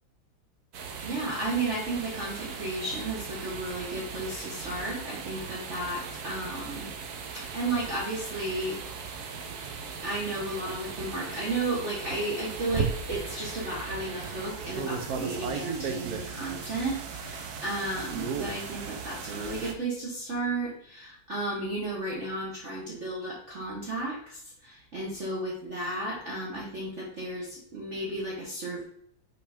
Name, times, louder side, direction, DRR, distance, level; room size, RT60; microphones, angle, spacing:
sound 1, 0.7-19.7, right 5 dB, 60° right, 1.2 m, -37 dB
voice 1, 1.0-8.8 10.0-28.8, right 2 dB, 40° right, -4 dB, 1.4 m, -33 dB
5.3 x 4.6 x 5.0 m, 0.67 s
omnidirectional pair, 2.1 m